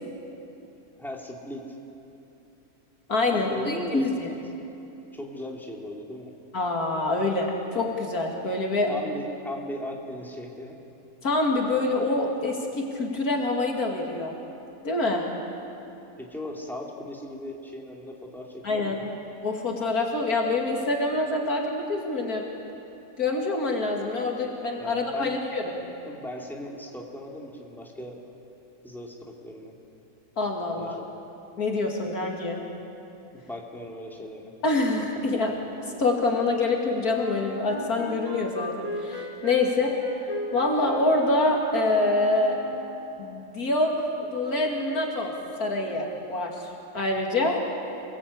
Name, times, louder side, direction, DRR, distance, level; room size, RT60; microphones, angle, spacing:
voice 1, 1.0-1.6 3.2-4.0 4.5-4.7 5.1-6.3 8.9-10.8 16.2-19.1 24.8-25.4 26.0-28.2 28.8-29.8 30.8-31.1 33.3-34.5, left 1 dB, ahead, -1 dB, 2.8 m, -37 dB
voice 2, 3.1-4.3 6.5-8.9 11.2-14.3 14.8-15.2 18.6-19.0 19.4-22.4 23.2-25.6 30.4-30.9 31.6-32.6 34.6-35.5 35.9-39.9 40.5-42.6 43.2-43.9 44.2-45.3 45.6-46.5 46.9-47.6, left 2 dB, 75° left, 0 dB, 2.8 m, -26 dB
Wind instrument woodwind instrument, 37.1-43.1, left 1 dB, 25° left, 3.4 m, -37 dB
28.0 x 18.0 x 8.5 m, 2.9 s
omnidirectional pair, 1.6 m